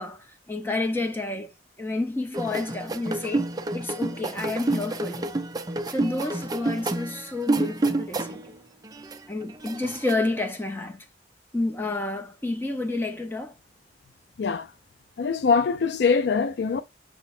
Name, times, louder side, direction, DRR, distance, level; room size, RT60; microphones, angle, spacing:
voice 1, 0.0-1.5 1.8-5.4 5.9-8.6 9.3-11.1 11.5-13.5, left 2 dB, 10° left, 0.8 m, -30 dB
sound 1, 2.3-8.5 8.8-10.1, right 2 dB, 20° right, 0.4 m, -29 dB
voice 2, 15.2-16.8, left 5 dB, 65° left, 0.4 m, -23 dB
6.1 x 2.1 x 4.2 m
head